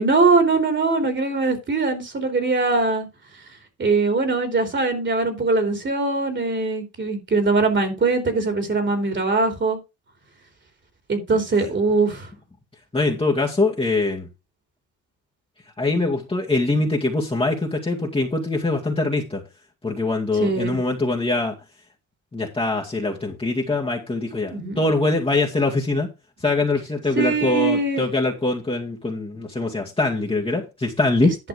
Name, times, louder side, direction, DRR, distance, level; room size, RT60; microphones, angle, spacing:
voice 1, 0.0-3.1 3.8-9.8 11.1-12.3 20.4-20.8 24.5-24.8 27.2-28.0, right 3 dB, 40° right, 3.2 m, -21 dB
voice 2, 12.9-14.3 15.8-19.4 19.8-21.6 22.3-26.1 26.4-31.3, left 2 dB, 20° left, 2.1 m, -23 dB
11.0 x 5.6 x 5.0 m
cardioid pair, 90°, 30 cm